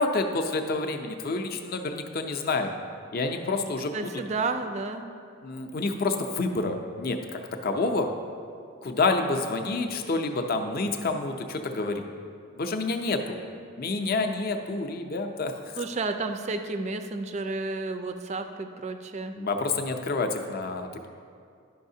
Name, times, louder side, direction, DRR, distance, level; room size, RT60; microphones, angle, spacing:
voice 1, 0.0-2.7 3.1-4.1 5.4-8.1 8.8-12.0 12.6-13.4 13.8-15.8 19.4-21.1, left 3 dB, 45° left, 5 dB, 0.5 m, -28 dB
voice 2, 3.9-5.1 15.8-19.4, right 3 dB, 30° right, 8 dB, 0.3 m, -31 dB
11.0 x 5.6 x 2.7 m, 2.3 s
head